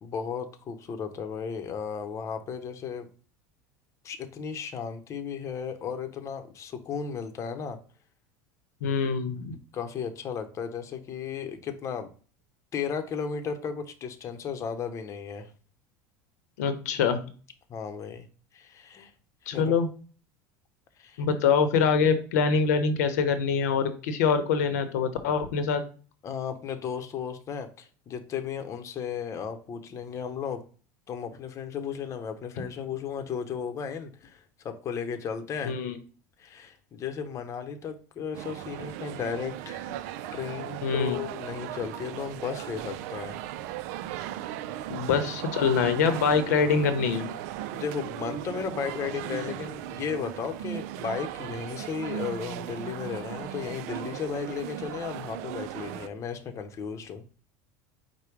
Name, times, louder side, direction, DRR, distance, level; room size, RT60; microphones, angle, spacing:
voice 1, 0.0-3.1 4.0-7.8 9.7-12.1 12.7-15.5 17.7-18.3 18.5-19.1 19.5-19.8 21.0-21.3 26.2-30.6 31.1-35.7 36.4-43.4 47.7-57.2, left 6 dB, 35° left, 6 dB, 0.8 m, -35 dB
voice 2, 8.8-9.6 16.6-17.2 19.5-19.9 21.2-25.8 35.6-35.9 40.8-41.2 44.9-47.3, left 6 dB, 85° left, 9 dB, 0.8 m, -24 dB
sound 1, 38.3-56.1, right 12 dB, 70° right, 0.4 m, -37 dB
4.8 x 2.2 x 4.6 m, 0.38 s
supercardioid pair, 110°, 9 cm